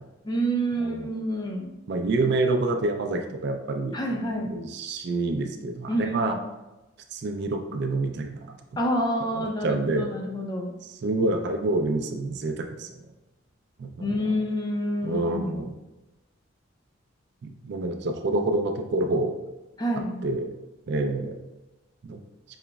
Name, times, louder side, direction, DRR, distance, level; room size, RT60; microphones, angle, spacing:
voice 1, 0.2-1.7 3.9-4.5 5.9-6.3 8.8-10.7 14.0-15.6 19.8-20.3, equal, 20° left, 1 dB, 0.4 m, -28 dB
voice 2, 0.8-1.1 1.9-4.0 4.5-6.4 7.1-8.6 9.3-10.1 10.8-12.9 13.8-14.2 15.0-15.7 17.4-19.4 20.2-20.5 20.9-21.4 22.0-22.2, right 2 dB, 55° right, 5 dB, 0.4 m, -27 dB
4.9 x 3.0 x 2.3 m, 1.0 s
head